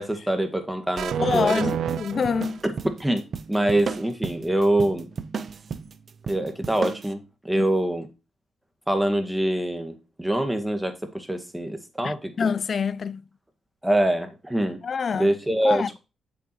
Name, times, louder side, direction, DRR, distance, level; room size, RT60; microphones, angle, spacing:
voice 1, 0.0-1.7 2.6-2.7 3.0-3.2 3.5-5.1 6.3-8.1 8.9-12.5 13.8-14.8 15.1-16.0, right 1 dB, 10° right, 1.9 m, -25 dB
sound 1, 1.0-3.0, right 9 dB, 75° right, 0.4 m, -29 dB
voice 2, 1.2-2.6 3.6-3.7 7.5-7.7 12.0-13.2 14.8-15.3 15.6-16.0, left 6 dB, 50° left, 0.3 m, -26 dB
sound 2, 1.3-7.1, right 5 dB, 50° right, 0.7 m, -35 dB
8.2 x 7.1 x 3.1 m
cardioid pair, 75°, 0 cm